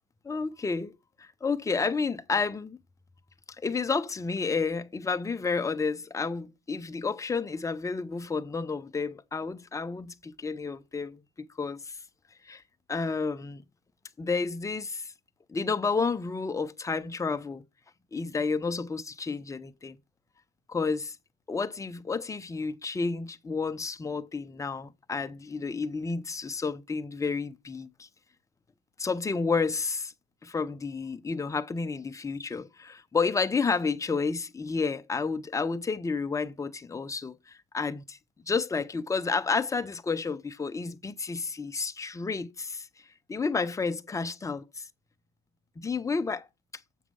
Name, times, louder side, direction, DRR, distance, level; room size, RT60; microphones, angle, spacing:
voice 1, 0.2-0.9 1.2-2.8 3.6-12.0 12.4-12.6 12.9-13.6 14.2-15.1 15.5-17.6 18.1-20.0 20.7-21.2 21.5-28.1 29.0-30.1 30.4-38.2 38.5-42.9 43.3-44.6 45.8-46.5, left 4 dB, 10° left, 0.5 m, -31 dB
7.4 x 6.3 x 5.3 m
supercardioid pair, 100°, 40 cm